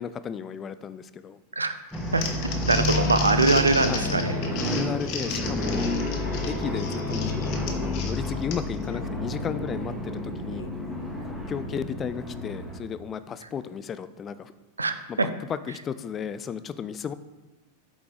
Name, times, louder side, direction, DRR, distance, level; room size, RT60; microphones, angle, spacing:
voice 1, 0.0-1.4 2.8-3.1 3.8-4.2 4.6-5.9 6.5-7.3 7.7-10.7 11.2-14.5 15.1-17.1, left 7 dB, 25° left, 13 dB, 0.4 m, -34 dB
Crumpling crinkling, 1.9-8.8, left 6 dB, 45° left, 1.0 m, -34 dB
sound 1, 1.9-12.8, left 1 dB, ahead, 1.2 m, -30 dB
voice 2, 2.7-4.3 14.8-15.3, right 3 dB, 80° right, 9 dB, 0.5 m, -22 dB
Telephone, 2.8-4.7 5.6-7.5 8.8-9.0 10.5-10.7, left 3 dB, 75° left, 0.7 m, -41 dB
8.2 x 4.6 x 3.8 m, 1.2 s
figure-of-eight pair, 90°, 0 cm